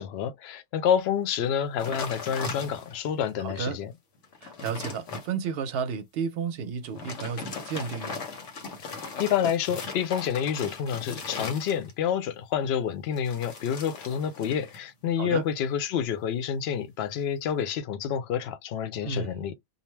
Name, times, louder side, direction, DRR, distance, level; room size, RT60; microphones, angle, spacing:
voice 1, 0.0-3.9 9.2-19.5, left 8 dB, 65° left, 0.8 m, -28 dB
sound 1, 1.8-3.1 3.6-3.7 4.1-5.3 6.8-12.1 13.1-14.8 15.1-15.5, left 4 dB, 85° left, 1.2 m, -38 dB
voice 2, 3.4-3.8 4.4-8.2 15.2-15.4 19.0-19.4, right 6 dB, 60° right, 0.7 m, -32 dB
2.6 x 2.0 x 3.1 m
omnidirectional pair, 1.2 m